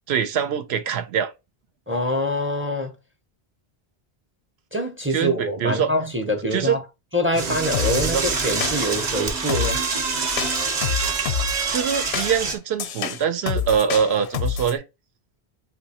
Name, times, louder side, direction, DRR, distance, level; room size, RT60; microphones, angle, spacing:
voice 1, 0.1-1.3 5.1-5.9 6.5-6.7 7.9-8.2 11.7-14.8, right 7 dB, 85° right, 0.8 m, -23 dB
voice 2, 1.9-2.9 4.7-6.8 7.1-9.8, equal, 15° right, 0.4 m, -25 dB
Door / Toilet flush, 7.3-12.6, right 4 dB, 45° right, 0.8 m, -26 dB
sound 1, 7.7-8.1 8.6-9.1 9.5-9.9 10.4-11.6 12.1-14.8, left 7 dB, 85° left, 0.8 m, -28 dB
2.7 x 2.2 x 4.1 m
omnidirectional pair, 1.1 m